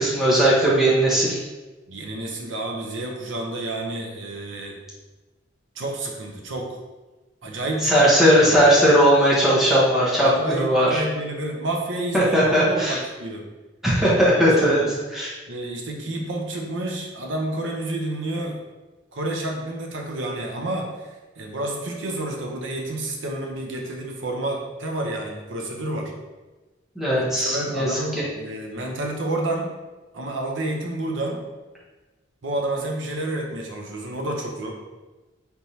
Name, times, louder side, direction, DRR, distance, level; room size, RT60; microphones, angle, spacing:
voice 1, 0.0-1.4 7.8-11.0 12.1-13.0 13.8-14.8 15.1-15.3 27.0-28.0, equal, ahead, -7 dB, 1.1 m, -18 dB
voice 2, 1.9-4.8 5.8-6.8 7.4-8.6 10.2-13.4 14.2-14.9 15.5-18.6 19.1-26.1 27.2-29.7 30.1-31.4 32.4-34.7, right 1 dB, 80° right, 1 dB, 0.8 m, -30 dB
4.4 x 3.4 x 2.8 m, 1.2 s
head